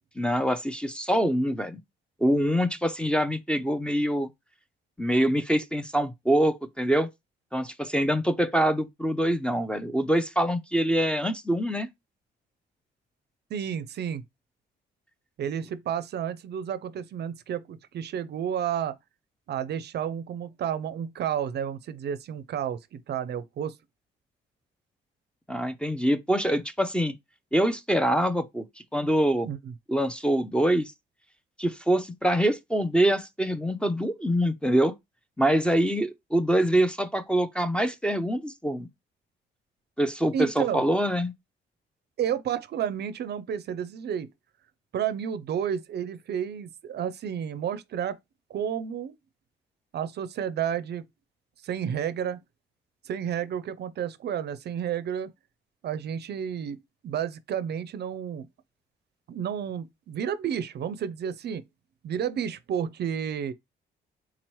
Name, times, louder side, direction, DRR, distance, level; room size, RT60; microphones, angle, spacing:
voice 1, 0.2-1.8 2.2-4.3 5.0-7.1 7.5-11.9 25.5-27.1 27.5-28.6 28.9-29.5 29.9-30.9 31.6-34.9 35.4-38.9 40.0-41.3, right 1 dB, 5° left, 0.4 m, -25 dB
voice 2, 13.5-14.2 15.4-18.9 19.5-23.8 29.5-29.7 40.3-40.9 42.2-44.3 44.9-48.2 48.5-49.1 49.9-51.0 51.6-52.4 53.1-55.3 55.8-56.8 57.0-58.5 59.3-61.6 62.0-63.5, right 9 dB, 55° right, 0.4 m, -31 dB
3.8 x 2.9 x 3.0 m
cardioid pair, 90°, 20 cm